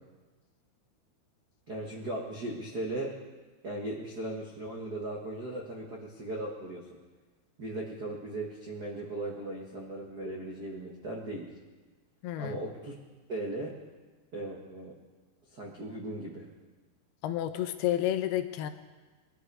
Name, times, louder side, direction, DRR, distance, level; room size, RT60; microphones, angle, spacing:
voice 1, 1.7-3.2 3.6-6.9 7.6-11.5 12.4-12.9 13.3-13.8 14.3-14.9 15.5-16.5, right 1 dB, 80° right, -2 dB, 0.8 m, -37 dB
voice 2, 12.2-12.6 17.2-18.7, left 12 dB, 85° left, 9 dB, 2.8 m, -30 dB
21.5 x 11.5 x 4.8 m, 1.3 s
omnidirectional pair, 4.5 m